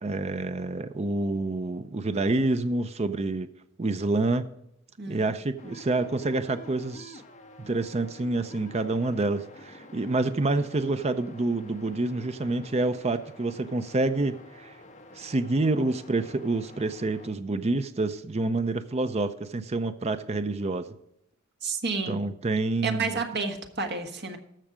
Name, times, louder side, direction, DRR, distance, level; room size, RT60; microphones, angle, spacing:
voice 1, 0.0-3.5 3.8-4.5 5.1-7.2 7.6-14.8 15.1-20.9 22.1-23.1, right 2 dB, 30° right, 0.5 m, -28 dB
voice 2, 5.0-5.3 21.6-22.2 22.8-24.4, right 4 dB, 55° right, 1.6 m, -30 dB
sound 1, 5.6-17.3, left 1 dB, 35° left, 1.4 m, -49 dB
14.0 x 6.4 x 5.0 m
head